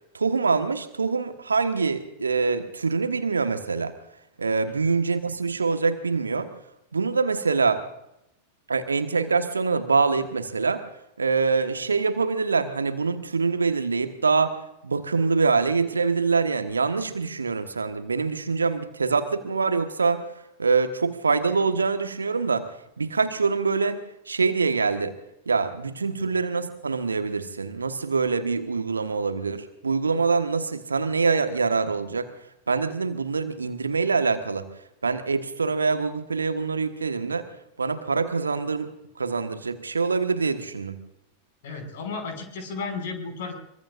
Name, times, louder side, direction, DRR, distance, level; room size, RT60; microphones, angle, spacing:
voice 1, 0.1-3.9 4.4-6.5 6.9-7.8 8.7-10.8 11.2-14.6 14.8-20.3 20.6-22.7 23.0-24.0 24.3-25.2 25.5-32.3 32.7-34.7 35.0-37.5 37.8-38.9 39.2-41.0, right 4 dB, 75° right, 9 dB, 1.3 m, -24 dB
voice 2, 41.6-43.5, left 4 dB, 55° left, 4 dB, 5.7 m, -34 dB
24.0 x 23.5 x 2.5 m, 0.82 s
figure-of-eight pair, 90°, 0 cm